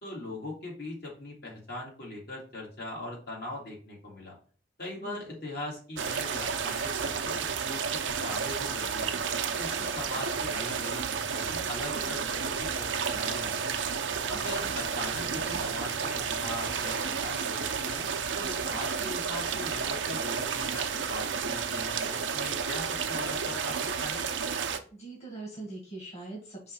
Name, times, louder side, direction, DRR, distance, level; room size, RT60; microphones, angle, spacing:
voice 1, 0.0-4.4 4.8-9.2 9.6-13.6 14.3-18.0 18.3-24.2, left 1 dB, 60° left, -3 dB, 2.3 m, -40 dB
voice 2, 5.0-5.5 14.3-14.7 24.9-26.7, right 2 dB, 40° left, -2 dB, 2.0 m, -43 dB
sound 1, 6.0-24.8, right 6 dB, 85° right, 0.6 m, -31 dB
5.5 x 3.2 x 5.6 m, 0.40 s
head